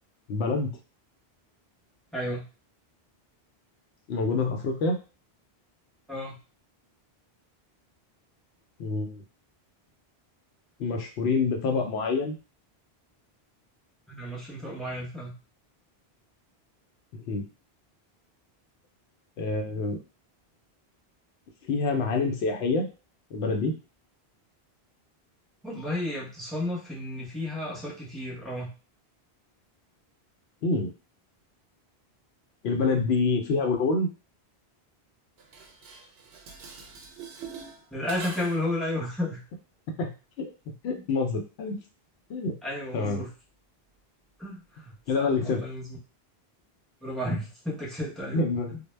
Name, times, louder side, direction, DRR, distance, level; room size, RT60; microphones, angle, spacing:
voice 1, 0.3-0.8 4.1-5.0 8.8-9.2 10.8-12.3 17.1-17.4 19.4-20.0 21.6-22.9 23.3-23.8 30.6-30.9 32.6-34.1 39.9-41.8 42.3-42.6 42.9-43.2 45.1-45.6 48.3-48.7, left 3 dB, 80° left, 4 dB, 0.8 m, -27 dB
voice 2, 2.1-2.4 6.1-6.4 14.1-15.3 25.6-28.7 37.9-39.4 42.6-43.3 44.4-46.0 47.0-48.4 48.7-48.8, left 1 dB, ahead, -3 dB, 0.6 m, -33 dB
Dishes pots and pans, 35.4-38.8, right 5 dB, 75° right, 0.8 m, -44 dB
2.1 x 2.1 x 3.2 m, 0.33 s
omnidirectional pair, 1.1 m